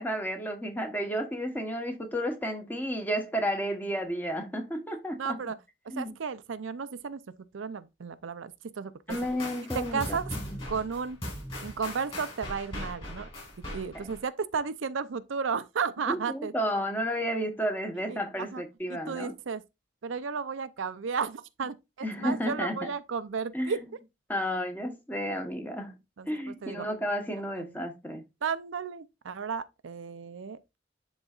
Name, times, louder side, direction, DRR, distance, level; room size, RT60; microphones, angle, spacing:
voice 1, 0.0-5.5 5.9-6.1 9.1-10.6 13.9-14.1 16.1-19.3 22.0-22.9 23.5-23.8 24.3-26.0 26.2-28.2, equal, 10° left, 1.0 m, -32 dB
voice 2, 5.2-5.6 6.0-7.2 7.5-9.2 9.7-10.2 10.7-11.2 11.6-13.3 13.7-16.5 18.1-18.6 18.9-19.6 20.0-23.8 26.2-26.9 27.5-27.7 28.4-30.8, right 5 dB, 80° right, 0.5 m, -33 dB
sound 1, 9.1-14.2, left 1 dB, 30° left, 4.4 m, -39 dB
11.0 x 3.9 x 2.4 m
head